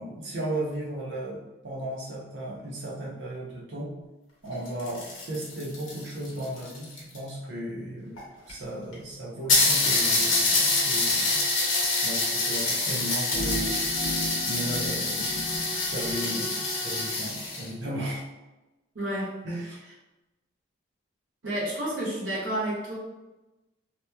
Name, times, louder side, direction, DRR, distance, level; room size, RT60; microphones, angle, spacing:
voice 1, 0.0-3.9 4.4-8.1 8.5-11.4 12.0-13.8 14.5-18.3 19.4-19.8, right 1 dB, 60° right, -4 dB, 0.7 m, -35 dB
sound 1, 4.5-7.3 8.2-8.3 8.5-8.6 8.9-9.0 9.5-17.7, left 2 dB, 85° left, 0.8 m, -26 dB
sound 2, 13.3-16.2, equal, 35° left, 0.5 m, -35 dB
voice 2, 18.9-19.4 21.4-22.9, right 1 dB, 80° right, -7 dB, 1.1 m, -30 dB
2.9 x 2.1 x 2.2 m, 1.1 s
head